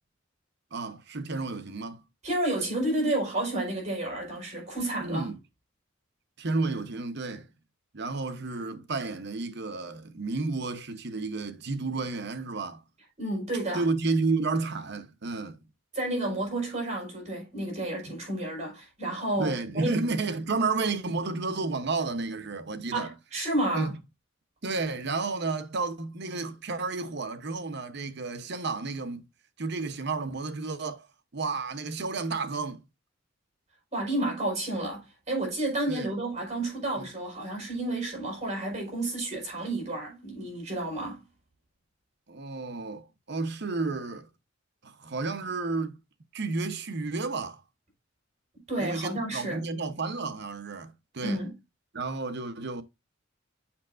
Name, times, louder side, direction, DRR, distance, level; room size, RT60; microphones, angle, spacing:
voice 1, 0.7-2.0 5.0-5.4 6.4-7.5 7.9-12.8 13.7-15.6 18.1-18.2 19.4-23.1 23.7-24.0 24.6-29.3 29.6-31.1 31.3-32.8 35.9-36.1 37.0-37.1 42.3-44.3 44.8-46.0 46.3-47.6 48.8-51.4 51.9-52.8, right 3 dB, 55° right, 0.9 m, -31 dB
voice 2, 2.2-5.3 13.2-13.8 15.9-20.0 22.9-23.9 33.9-41.2 48.7-49.6 51.2-51.5, right 1 dB, 35° right, 4.9 m, -31 dB
7.2 x 6.2 x 2.5 m
head